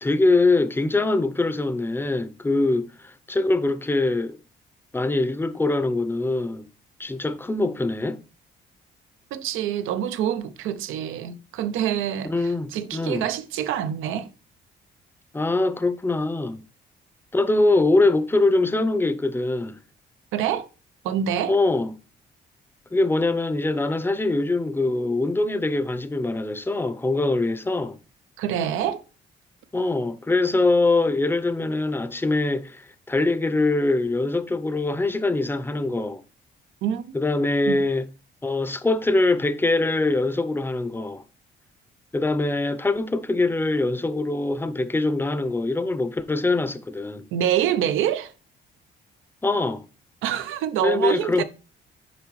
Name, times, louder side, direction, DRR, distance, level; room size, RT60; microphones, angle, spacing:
voice 1, 0.0-4.4 4.9-6.7 7.0-8.2 12.2-13.3 15.3-16.6 17.3-19.8 21.5-21.9 22.9-28.0 29.7-36.2 37.1-38.1 38.4-41.2 42.1-47.2 49.4-49.8 50.8-51.4, left 2 dB, 10° left, 0.6 m, -23 dB
voice 2, 9.3-14.3 20.3-20.7 21.0-21.5 28.4-29.0 36.8-37.0 37.7-37.8 47.3-48.3 50.2-51.4, right 10 dB, 90° right, 0.6 m, -26 dB
6.9 x 4.8 x 3.1 m
cardioid pair, 90°, 20 cm